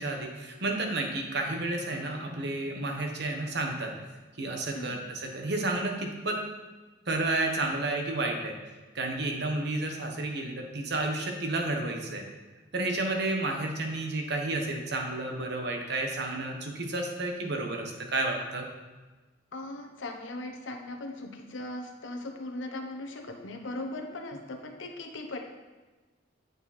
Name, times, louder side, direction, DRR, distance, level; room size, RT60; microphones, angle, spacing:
voice 1, 0.0-3.9 4.4-6.4 7.1-8.6 8.9-12.2 12.7-18.7, right 2 dB, 60° right, 2 dB, 1.3 m, -31 dB
voice 2, 4.7-5.1 19.5-25.4, left 2 dB, 85° left, 3 dB, 1.1 m, -39 dB
8.4 x 6.9 x 4.3 m, 1.3 s
head